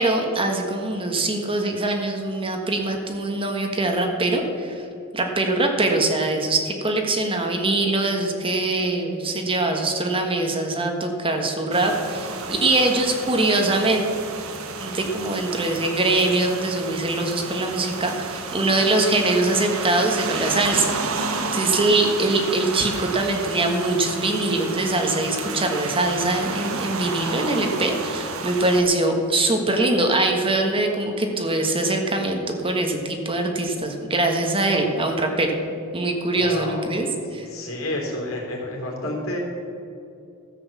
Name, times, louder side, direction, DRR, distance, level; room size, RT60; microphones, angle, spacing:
voice 1, 0.0-4.8 5.1-14.1 14.8-20.9 21.5-35.5 35.9-37.5, right 2 dB, 25° right, 3 dB, 1.4 m, -23 dB
sound 1, 11.7-28.8, right 4 dB, 75° right, 1.2 m, -31 dB
voice 2, 36.3-36.9 37.4-39.4, left 1 dB, 70° left, 0 dB, 3.3 m, -30 dB
13.5 x 8.0 x 7.2 m, 2.6 s
head